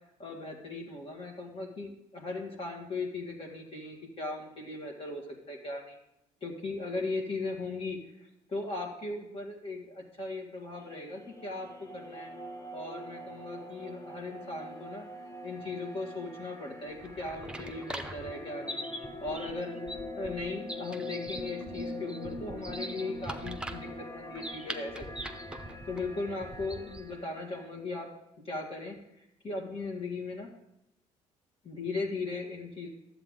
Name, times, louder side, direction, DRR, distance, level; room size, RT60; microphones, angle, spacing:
voice 1, 0.2-5.2 5.5-6.0 6.4-12.3 12.7-15.1 15.4-18.8 19.2-25.4 25.9-28.1 28.4-30.5 31.6-32.9, left 3 dB, 40° left, 0 dB, 2.0 m, -38 dB
sound 1, 10.8-27.7, left 1 dB, 20° left, 1.2 m, -43 dB
sound 2, 16.9-27.1, right 1 dB, 5° right, 0.9 m, -42 dB
11.0 x 8.1 x 3.8 m, 0.82 s
supercardioid pair, 80°, 14 cm